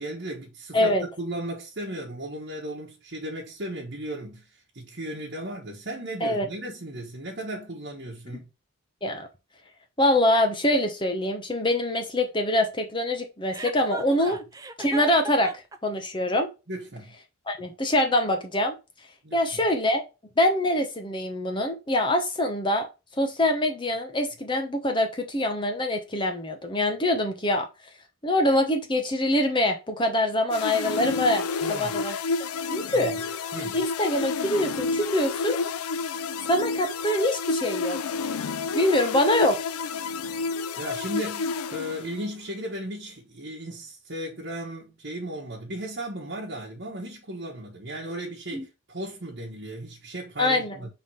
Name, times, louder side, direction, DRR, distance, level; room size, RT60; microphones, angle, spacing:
voice 1, 0.0-0.9 1.2-8.5 14.3-14.4 16.7-17.1 19.2-19.4 31.6-32.0 32.9-33.2 33.5-33.8 40.8-50.9, right 1 dB, 50° right, 1.3 m, -36 dB
voice 2, 0.7-1.0 6.2-6.5 9.0-9.3 10.0-14.4 14.8-15.5 15.8-16.5 17.5-18.7 19.3-20.0 20.4-22.9 23.2-27.7 28.2-31.4 31.7-32.2 32.7-33.1 33.7-35.6 36.4-38.0 38.7-39.6 48.5-48.6 50.4-50.8, left 1 dB, 20° left, 0.9 m, -24 dB
Chuckle chortle, 13.5-15.8, right 2 dB, 15° right, 0.4 m, -37 dB
sound 1, 30.5-42.4, left 4 dB, 80° left, 0.4 m, -30 dB
4.7 x 3.8 x 5.6 m
head